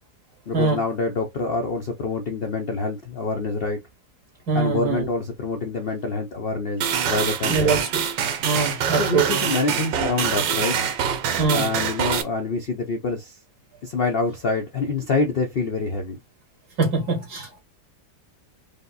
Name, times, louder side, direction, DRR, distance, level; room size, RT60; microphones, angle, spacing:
voice 1, 0.5-3.8 4.5-7.8 9.0-10.8 11.5-13.4 13.8-16.2, left 3 dB, 55° left, 0.6 m, -26 dB
voice 2, 4.5-5.1 7.5-7.9 8.4-9.4 11.4-11.7 16.8-17.6, right 4 dB, 60° right, 2.5 m, -23 dB
sound 1, 6.8-12.2, right 8 dB, 85° right, 1.5 m, -25 dB
5.2 x 2.2 x 3.9 m
omnidirectional pair, 1.9 m